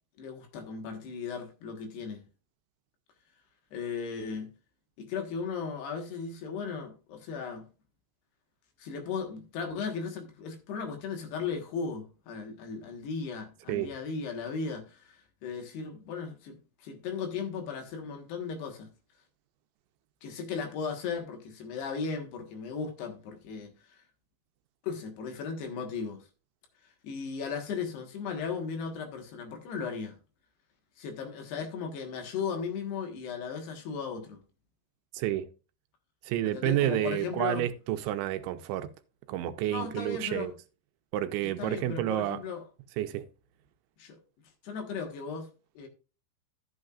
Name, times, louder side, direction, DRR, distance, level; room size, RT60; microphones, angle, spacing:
voice 1, 0.2-2.2 3.7-4.5 5.0-7.7 8.8-18.9 20.2-24.0 24.8-26.2 27.0-30.2 31.0-34.4 36.4-37.6 39.7-40.5 41.4-42.6 44.0-44.2 44.6-45.5 45.7-45.9, left 5 dB, 70° left, 3.4 m, -36 dB
voice 2, 35.1-35.5 36.3-38.9 39.3-40.5 41.1-42.4 43.0-43.3, right 13 dB, 80° right, 3.0 m, -30 dB
12.5 x 8.6 x 2.4 m
omnidirectional pair, 5.3 m